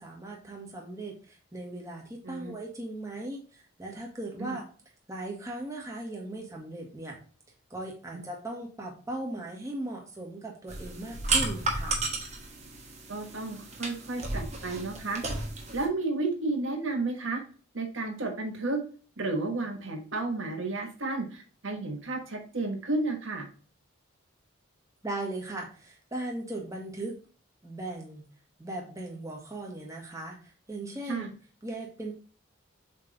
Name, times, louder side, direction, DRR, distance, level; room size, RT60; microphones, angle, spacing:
voice 1, 0.0-4.6 5.1-7.2 7.7-12.0 25.0-27.2 27.6-28.3 28.6-31.3 31.6-32.1, right 2 dB, 15° right, -1 dB, 1.4 m, -38 dB
sound 1, 10.7-15.9, right 3 dB, 35° right, 1.3 m, -33 dB
voice 2, 13.1-15.2 15.7-17.4 17.7-18.8 19.2-23.5 31.1-31.3, right 2 dB, 70° right, 3 dB, 1.4 m, -32 dB
7.5 x 3.3 x 3.9 m, 0.40 s
head